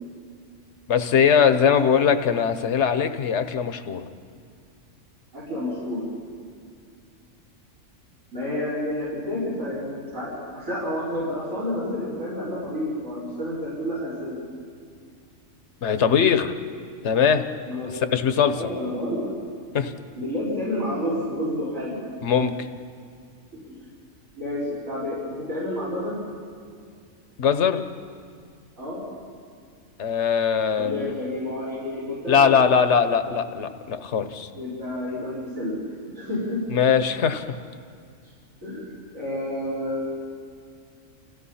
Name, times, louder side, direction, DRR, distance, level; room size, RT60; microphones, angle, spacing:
voice 1, 0.9-4.0 15.8-16.6 17.0-17.4 17.8-18.6 19.7-19.9 22.2-22.7 27.4-27.9 30.0-31.1 32.3-34.5 36.7-37.6, left 7 dB, 60° left, 9 dB, 1.2 m, -21 dB
voice 2, 5.3-6.1 8.3-14.4 17.7-17.9 18.5-19.3 20.2-22.0 23.5-23.9 24.3-26.2 28.8-29.0 30.8-32.6 34.5-35.8 36.0-36.6 38.6-40.2, left 1 dB, 70° right, -8 dB, 6.0 m, -30 dB
29.0 x 16.0 x 5.7 m, 2.2 s
omnidirectional pair, 1.4 m